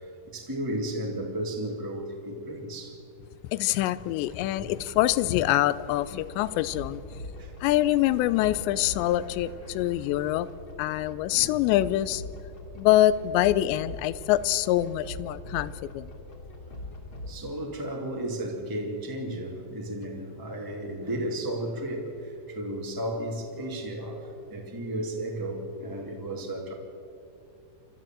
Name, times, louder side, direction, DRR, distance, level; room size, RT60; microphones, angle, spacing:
voice 1, 0.0-3.0 4.6-4.7 7.4-7.5 11.3-11.6 17.3-26.7, right 1 dB, 10° right, 0 dB, 0.9 m, -34 dB
voice 2, 3.5-7.0 7.6-10.5 10.8-12.2 12.8-16.1, left 14 dB, 85° left, 17 dB, 2.8 m, -25 dB
sound 1, 5.8-17.3, left 2 dB, 35° left, 2.8 m, -42 dB
29.0 x 12.5 x 7.5 m, 2.5 s
omnidirectional pair, 5.0 m